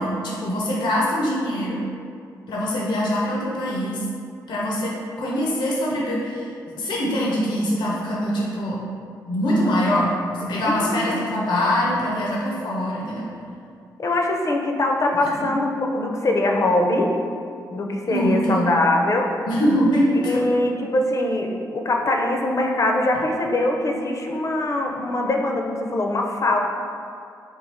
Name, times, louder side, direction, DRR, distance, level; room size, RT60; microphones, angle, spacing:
voice 1, 0.0-1.8 2.5-4.0 4.5-8.8 9.3-10.1 10.4-13.3 18.1-18.7 19.5-20.4, equal, 80° left, -5 dB, 0.8 m, -23 dB
voice 2, 10.7-11.2 14.0-17.1 17.7-19.3 20.3-26.6, left 2 dB, 45° left, 2 dB, 0.5 m, -22 dB
3.7 x 2.4 x 4.2 m, 2.4 s
cardioid pair, 65°, 8 cm